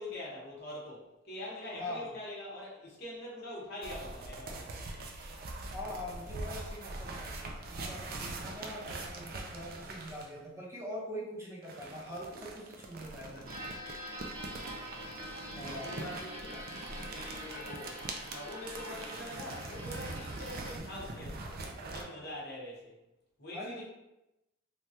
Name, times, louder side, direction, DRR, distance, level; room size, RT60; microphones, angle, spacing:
voice 1, 0.0-4.7 14.4-15.1 15.7-16.7 17.1-17.9 18.3-22.9 23.4-23.8, left 1 dB, 50° left, -5 dB, 0.9 m, -44 dB
voice 2, 1.8-2.1 5.7-13.8 15.5-16.0 23.5-23.8, left 1 dB, 15° right, -6 dB, 0.7 m, -43 dB
sound 1, 3.8-10.4 11.6-22.0, right 2 dB, 45° right, 0.3 m, -43 dB
sound 2, 13.4-20.8, equal, 70° right, 1.1 m, -45 dB
3.3 x 2.2 x 2.7 m, 0.92 s
head